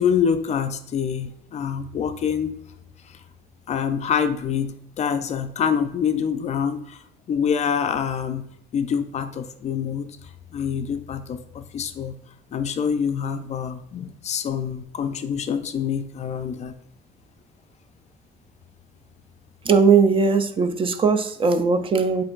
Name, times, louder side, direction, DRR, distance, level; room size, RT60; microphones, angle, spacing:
voice 1, 0.0-2.5 3.7-7.0 7.3-8.5 8.7-10.1 10.5-12.2 12.5-16.7, left 7 dB, 40° left, 9 dB, 0.4 m, -26 dB
voice 2, 19.6-22.2, right 5 dB, 30° right, 9 dB, 0.4 m, -19 dB
7.5 x 2.6 x 2.4 m, 0.71 s
cardioid pair, 110°, 17 cm